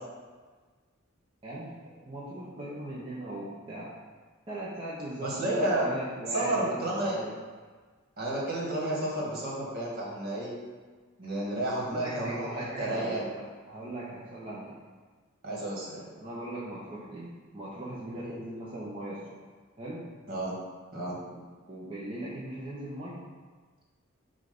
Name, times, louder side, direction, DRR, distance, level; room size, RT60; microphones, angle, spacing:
voice 1, 1.4-3.9 4.5-7.4 11.8-14.7 16.2-19.2 19.8-20.0 21.2-23.2, right 1 dB, 25° right, -9 dB, 1.0 m, -39 dB
voice 2, 5.2-5.9 6.3-7.2 8.2-10.5 11.2-13.2 15.4-16.0 18.2-18.3 20.3-20.5 20.9-21.2, right 1 dB, 50° right, -5 dB, 1.7 m, -31 dB
7.3 x 2.6 x 5.3 m, 1.4 s
head